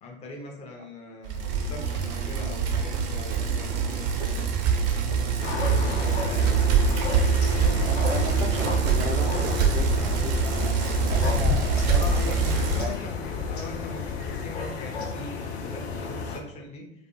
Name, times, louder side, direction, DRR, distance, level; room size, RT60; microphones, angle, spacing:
voice 1, 0.0-4.5 5.2-6.7 11.9-17.1, left 2 dB, 20° left, 0 dB, 0.4 m, -41 dB
Bicycle, 1.3-12.9, right 6 dB, 35° right, 0.4 m, -25 dB
sound 1, 5.4-16.4, left 5 dB, 60° left, 0.6 m, -33 dB
voice 2, 7.5-12.2 12.4-13.0, right 3 dB, 90° right, 3 dB, 0.5 m, -35 dB
sound 2, 7.7-14.9, left 5 dB, 40° left, 0.9 m, -32 dB
2.3 x 2.2 x 2.8 m, 0.79 s
figure-of-eight pair, 85°, 36 cm